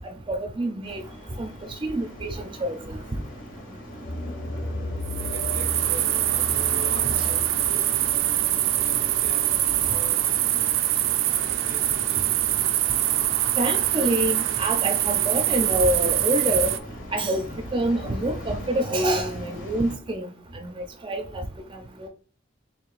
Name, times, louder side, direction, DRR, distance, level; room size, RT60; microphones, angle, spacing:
voice 1, 0.3-1.0 1.4-1.5 1.8-3.0 7.0-7.1 13.6-16.8 17.1-17.4 17.7-21.2 21.7-22.1, right 1 dB, 25° right, 0.4 m, -26 dB
sound 1, 0.8-19.9, equal, 85° left, 1.4 m, -41 dB
sound 2, 4.0-10.3, left 1 dB, 65° left, 0.7 m, -35 dB
sound 3, 5.0-16.8, right 13 dB, 90° right, 0.4 m, -24 dB
voice 2, 5.2-6.1 6.3-8.3 8.8-9.5 9.8-10.3 11.3-12.3, left 1 dB, 40° left, 1.7 m, -44 dB
4.7 x 3.0 x 2.5 m
head